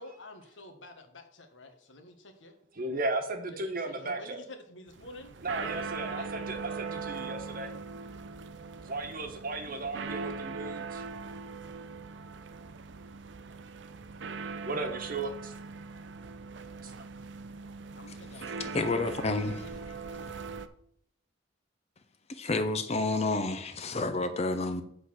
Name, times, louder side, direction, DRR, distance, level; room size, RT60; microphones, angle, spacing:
voice 1, 0.0-2.6 3.5-6.3 17.9-19.0 19.5-20.2, left 1 dB, 75° left, 1.4 m, -49 dB
voice 2, 2.8-4.4 5.4-7.7 8.8-11.0 14.6-15.5 16.8-16.9, right 2 dB, 50° right, 1.2 m, -35 dB
sound 1, 4.9-20.7, right 4 dB, 65° right, 0.5 m, -40 dB
voice 3, 18.7-19.6 22.3-24.8, left 2 dB, 35° left, 0.6 m, -29 dB
8.1 x 4.0 x 6.4 m
head